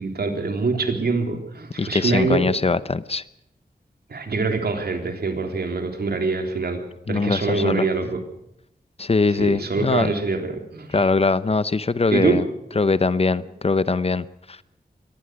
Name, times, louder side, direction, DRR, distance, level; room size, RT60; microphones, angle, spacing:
voice 1, 0.0-2.4 4.1-6.8 7.1-8.2 9.3-11.1 12.1-12.4, right 3 dB, 75° right, 5 dB, 3.6 m, -24 dB
voice 2, 1.8-3.2 7.1-7.9 9.0-10.1 10.9-12.4 12.8-14.6, left 3 dB, 35° left, 16 dB, 0.8 m, -22 dB
23.5 x 18.5 x 6.3 m, 0.80 s
wide cardioid pair, 120°, 16 cm